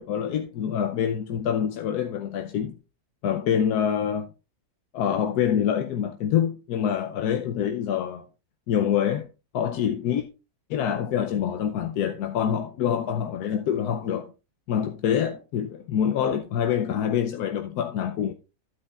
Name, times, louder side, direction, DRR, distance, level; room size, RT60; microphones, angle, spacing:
voice 1, 0.0-2.7 3.2-4.3 4.9-8.3 8.7-9.3 9.5-10.2 10.7-14.3 14.7-18.3, left 8 dB, 90° left, 1.2 m, -26 dB
12.5 x 8.8 x 2.4 m
omnidirectional pair, 1.6 m